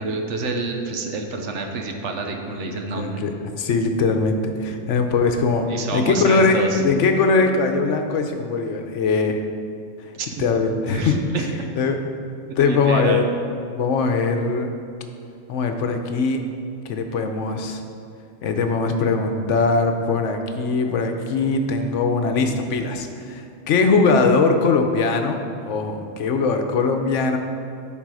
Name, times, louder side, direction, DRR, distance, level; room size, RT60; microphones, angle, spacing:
voice 1, 0.0-3.2 5.7-6.8 10.1-10.5 10.9-11.5 12.6-13.2, right 3 dB, 75° right, 4 dB, 1.1 m, -28 dB
voice 2, 2.5-9.4 10.4-11.5 11.7-12.0 12.6-13.2 13.8-14.7 15.5-16.4 16.8-17.8 18.4-27.4, left 4 dB, 75° left, 6 dB, 1.0 m, -21 dB
11.5 x 4.1 x 4.8 m, 2.4 s
omnidirectional pair, 1.3 m